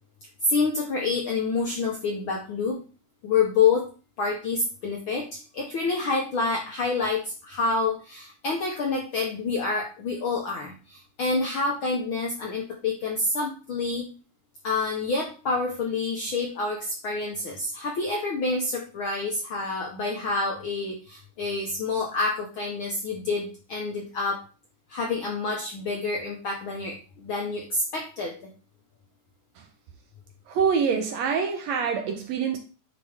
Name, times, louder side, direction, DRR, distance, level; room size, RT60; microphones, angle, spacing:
voice 1, 0.5-2.8 3.2-3.9 4.2-5.3 5.5-14.0 14.6-24.4 24.9-28.4, left 4 dB, 70° left, 1.2 m, -27 dB
voice 2, 30.5-32.6, right 6 dB, 75° right, 1.7 m, -25 dB
9.9 x 4.0 x 3.5 m
omnidirectional pair, 3.6 m